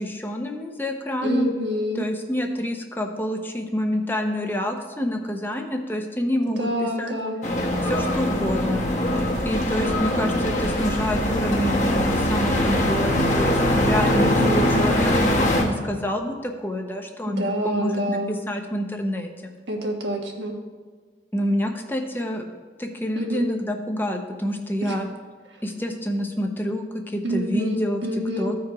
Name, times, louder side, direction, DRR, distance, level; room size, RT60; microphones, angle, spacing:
voice 1, 0.0-1.5 1.9-7.1 7.8-8.8 9.4-19.5 21.3-22.5 22.8-25.1 25.6-28.0 28.4-28.6, equal, 10° left, 4 dB, 0.6 m, -27 dB
voice 2, 1.2-2.1 6.6-7.4 14.0-15.0 17.3-18.3 19.7-20.5 23.1-23.5 24.8-25.0 27.2-28.5, right 1 dB, 85° right, 1 dB, 1.4 m, -27 dB
sound 1, 7.4-15.6, left 1 dB, 40° left, 1.3 m, -22 dB
14.0 x 4.7 x 4.7 m, 1.5 s
head